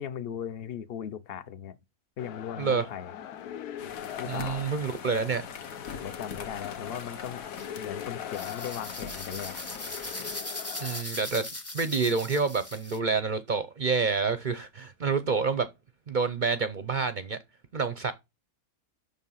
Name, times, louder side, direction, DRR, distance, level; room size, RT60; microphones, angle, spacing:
voice 1, 0.0-1.8 2.2-3.1 4.2-4.6 6.0-7.4 7.8-9.5, left 9 dB, 50° left, 0.8 m, -38 dB
sound 1, 2.2-11.0, left 10 dB, 90° left, 1.2 m, -41 dB
sound 2, 3.8-10.4, left 6 dB, 70° left, 1.5 m, -42 dB
voice 2, 4.3-5.4 10.8-11.5 11.7-15.7 16.1-17.4 17.7-18.1, right 4 dB, 50° right, 0.6 m, -28 dB
sound 3, 7.5-7.7 8.3-13.0, left 1 dB, 15° left, 0.8 m, -39 dB
7.3 x 6.6 x 5.5 m
omnidirectional pair, 1.6 m